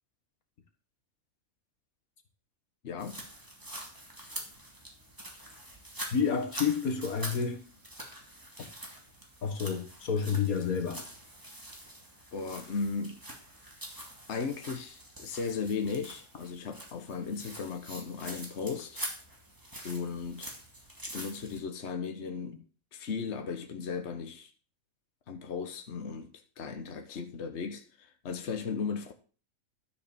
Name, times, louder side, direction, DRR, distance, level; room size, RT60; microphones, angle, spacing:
voice 1, 2.8-3.2 12.3-13.2 14.3-19.0 19.8-20.5 21.0-22.6 22.9-24.5 25.3-26.3 26.6-29.1, left 5 dB, 55° left, 1.3 m, -36 dB
sound 1, 3.0-21.6, right 1 dB, 15° right, 2.5 m, -45 dB
voice 2, 6.1-7.7 9.4-11.0, left 6 dB, 80° left, 2.0 m, -29 dB
12.5 x 5.2 x 6.9 m
omnidirectional pair, 1.5 m